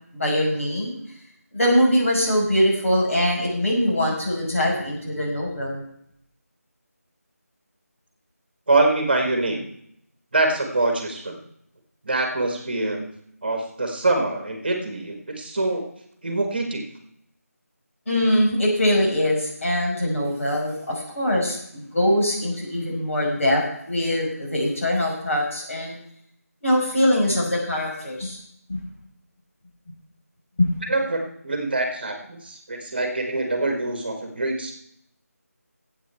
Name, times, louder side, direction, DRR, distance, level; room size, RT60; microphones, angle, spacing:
voice 1, 0.1-1.0 1.5-5.8 18.1-23.6 23.9-26.0 26.6-28.4 28.7-28.8 30.6-30.7, left 1 dB, 55° left, -3 dB, 5.3 m, -22 dB
voice 2, 8.7-9.6 10.3-11.4 12.0-13.1 13.4-15.8 16.2-16.8 30.9-34.7, right 2 dB, 35° right, 4 dB, 1.7 m, -24 dB
15.0 x 8.1 x 4.5 m, 0.71 s
figure-of-eight pair, 175°, 9 cm